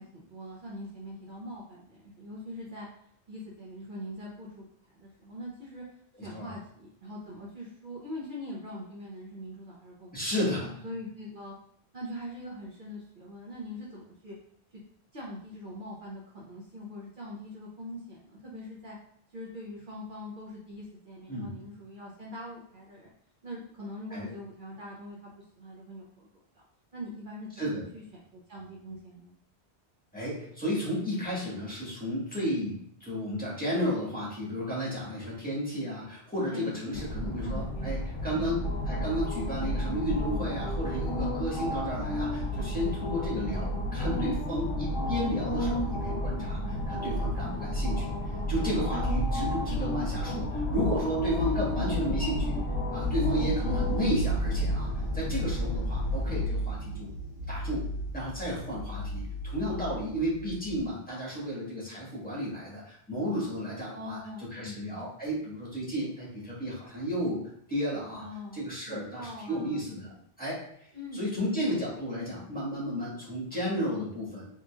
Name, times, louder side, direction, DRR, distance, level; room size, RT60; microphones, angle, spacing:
voice 1, 0.0-2.9 3.3-4.7 4.9-5.8 6.2-10.1 10.8-11.5 11.9-14.3 14.7-14.8 15.1-19.0 19.3-23.1 23.4-26.3 26.5-26.6 26.9-27.5 27.9-29.3 36.5-37.9 38.3-38.5 51.4-52.3 63.9-64.8 68.2-70.2 70.9-71.7, left 1 dB, 55° right, -5 dB, 0.9 m, -42 dB
voice 2, 10.1-10.8 21.3-21.5 24.1-24.3 27.6-27.8 30.1-48.1 48.5-52.6 52.9-54.9 55.1-57.1 57.5-57.9 58.1-67.4 67.7-68.2 68.5-70.1 70.4-70.6 71.1-74.5, equal, 10° left, -7 dB, 1.5 m, -33 dB
sound 1, 36.9-56.5, left 1 dB, 60° left, 1.0 m, -31 dB
sound 2, 52.9-60.8, equal, 85° right, 1.6 m, -34 dB
3.7 x 3.0 x 2.4 m, 0.66 s
omnidirectional pair, 1.1 m